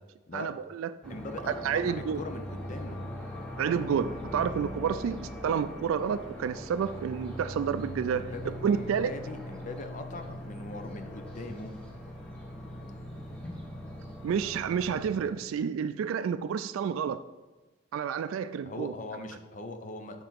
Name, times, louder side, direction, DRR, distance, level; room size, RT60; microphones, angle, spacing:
voice 1, 0.3-1.2 1.6-2.2 3.6-9.1 14.2-17.2 17.9-18.9, right 7 dB, 90° right, 11 dB, 0.3 m, -30 dB
sound 1, 1.0-15.3, equal, 5° left, 1.1 m, -41 dB
voice 2, 1.1-3.0 8.2-11.7 18.6-20.2, left 2 dB, 40° left, 6 dB, 0.6 m, -41 dB
6.8 x 4.0 x 5.8 m, 1.1 s
head